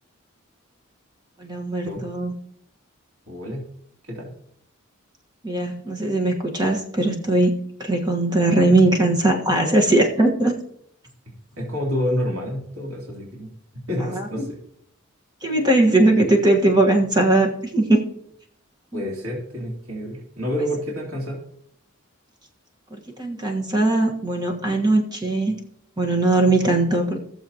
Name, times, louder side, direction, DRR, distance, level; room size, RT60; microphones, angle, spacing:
voice 1, 1.4-2.3 5.4-7.5 7.8-10.5 14.0-14.4 15.4-18.0 18.9-19.0 23.2-25.6 26.0-27.2, right 2 dB, 20° right, 1 dB, 1.4 m, -20 dB
voice 2, 3.3-3.7 4.1-4.3 11.6-13.5 13.9-14.6 18.9-21.4, equal, 85° right, -3 dB, 3.2 m, -28 dB
17.5 x 7.1 x 2.9 m, 0.68 s
head